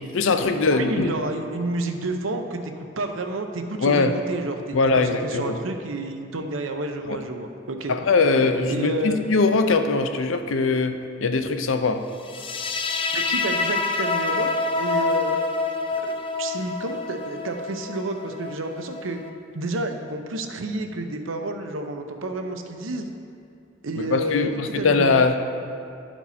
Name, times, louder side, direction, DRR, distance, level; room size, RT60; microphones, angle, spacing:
voice 1, 0.0-1.1 3.8-4.1 4.7-5.6 7.1-7.2 7.9-12.0 24.0-25.4, left 3 dB, 85° left, 8 dB, 0.5 m, -21 dB
voice 2, 0.7-8.0 8.7-9.2 13.1-14.5 14.8-15.4 16.0-19.2 19.5-23.1 23.8-25.2, right 2 dB, 90° right, 5 dB, 0.7 m, -30 dB
sound 1, 12.3-19.3, left 3 dB, 30° left, 0.4 m, -27 dB
11.5 x 4.5 x 4.1 m, 2.4 s
head